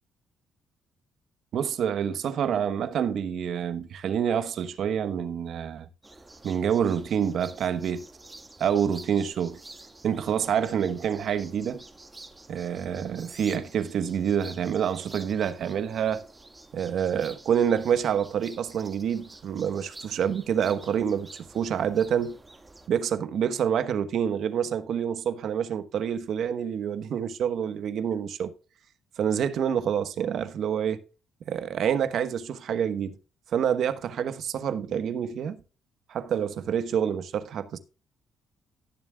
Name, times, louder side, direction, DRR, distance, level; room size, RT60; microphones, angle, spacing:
voice 1, 1.5-5.9 6.4-8.0 8.6-9.6 10.0-11.8 12.5-16.3 16.7-22.4 22.9-28.5 29.2-31.0 31.5-33.1 33.5-35.6 36.1-37.8, right 8 dB, 70° right, 1.1 m, -27 dB
sound 1, 6.0-22.9, right 2 dB, 20° right, 1.7 m, -49 dB
17.0 x 7.3 x 2.3 m
cardioid pair, 90°, 0 cm